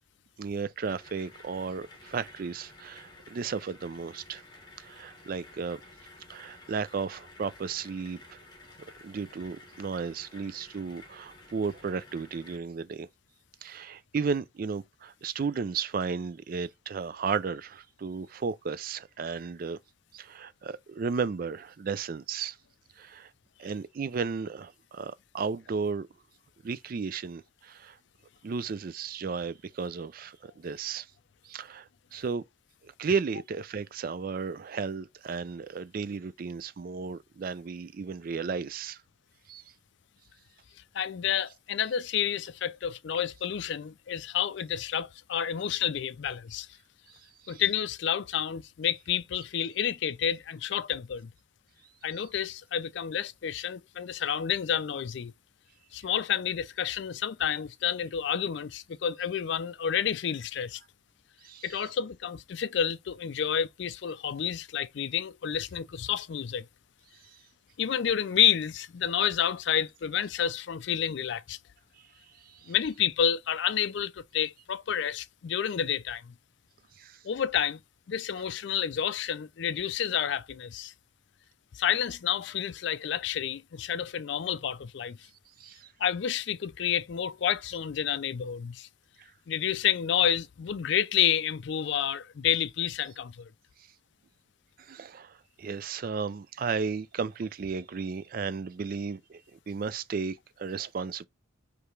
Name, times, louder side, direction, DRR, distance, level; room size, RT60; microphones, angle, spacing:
voice 1, 0.4-4.4 4.8-5.8 6.3-8.4 9.0-13.1 13.6-19.8 20.1-22.6 23.0-23.3 23.6-26.1 26.6-28.0 28.4-31.1 31.4-32.4 32.8-39.0 39.5-39.7 47.1-47.6 52.1-52.2 56.0-56.1 61.4-61.9 67.3-67.4 72.0-72.1 72.3-72.7 76.9-77.2 85.6-85.9 89.2-89.3 94.8-101.3, right 5 dB, 45° right, 0.3 m, -34 dB
sound 1, 0.8-12.6, left 2 dB, 20° left, 1.2 m, -53 dB
voice 2, 40.9-46.7 47.5-51.3 52.0-55.3 55.9-60.8 61.6-66.7 67.8-71.6 72.7-76.3 77.2-77.8 78.1-80.9 81.7-85.2 86.0-88.9 89.5-93.5, left 9 dB, 60° left, 0.4 m, -29 dB
4.9 x 3.3 x 3.2 m
head